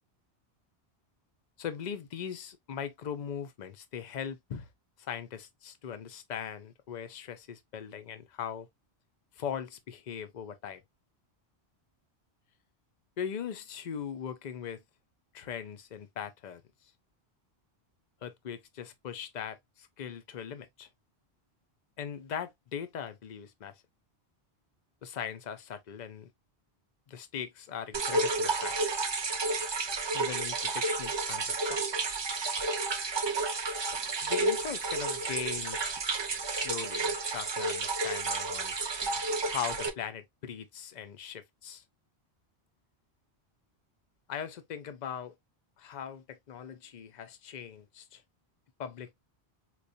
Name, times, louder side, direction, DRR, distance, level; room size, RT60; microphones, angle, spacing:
voice 1, 1.6-4.7 5.0-8.7 9.4-10.8 13.2-14.8 15.3-16.6 18.2-20.9 22.0-23.8 25.0-26.3 27.1-28.8 30.1-31.8 34.2-35.9 36.5-38.7 39.5-41.8 44.3-45.3 45.8-48.2 48.8-49.1, left 8 dB, 50° left, 0.6 m, -40 dB
sound 1, 27.9-39.9, right 3 dB, 45° right, 0.3 m, -31 dB
4.5 x 2.4 x 2.5 m
omnidirectional pair, 1.1 m